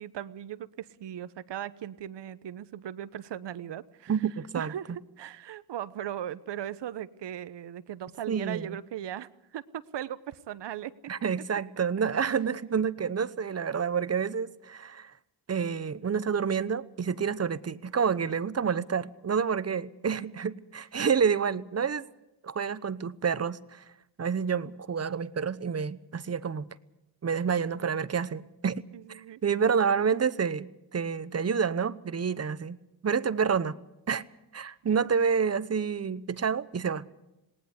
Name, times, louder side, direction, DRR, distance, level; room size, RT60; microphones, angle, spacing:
voice 1, 0.0-4.1 4.5-10.9 28.9-29.4, right 11 dB, 65° right, 15 dB, 1.1 m, -38 dB
voice 2, 4.1-4.7 8.3-8.8 11.1-15.1 15.5-22.0 22.4-23.8 24.2-26.7 27.2-32.8 33.0-33.8 34.1-34.2 34.5-37.1, right 6 dB, 35° right, 16 dB, 1.0 m, -28 dB
19.0 x 18.5 x 8.1 m, 0.92 s
cardioid pair, 80°, 45 cm